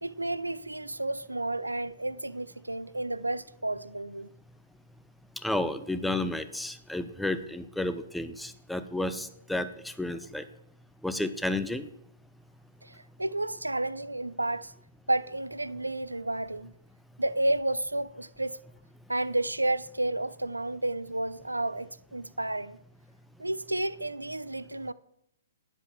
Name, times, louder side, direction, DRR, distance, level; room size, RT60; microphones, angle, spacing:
voice 1, 0.0-4.3 12.8-14.7 15.1-16.7 17.2-18.6 19.1-22.8 23.4-24.9, right 2 dB, 85° right, 0.5 m, -31 dB
voice 2, 5.4-10.4 11.0-11.9, left 2 dB, ahead, 0.6 m, -32 dB
10.5 x 7.9 x 5.8 m
figure-of-eight pair, 120°, 0 cm